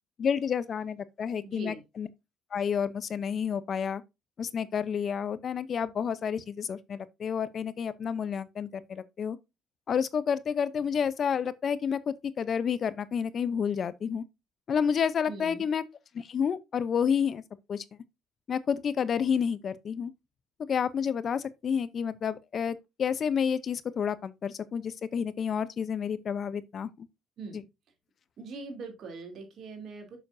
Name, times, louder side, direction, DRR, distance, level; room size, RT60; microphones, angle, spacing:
voice 1, 0.2-2.1 2.5-4.0 4.4-9.4 9.9-14.2 14.7-15.8 16.1-17.4 17.7-17.8 18.5-20.1 20.7-27.1, left 7 dB, 50° left, 0.7 m, -30 dB
voice 2, 1.4-1.8 15.3-15.6 27.4-27.6 28.4-30.2, right 3 dB, 60° right, 3.0 m, -41 dB
7.0 x 6.6 x 2.6 m
supercardioid pair, 80°, 0 cm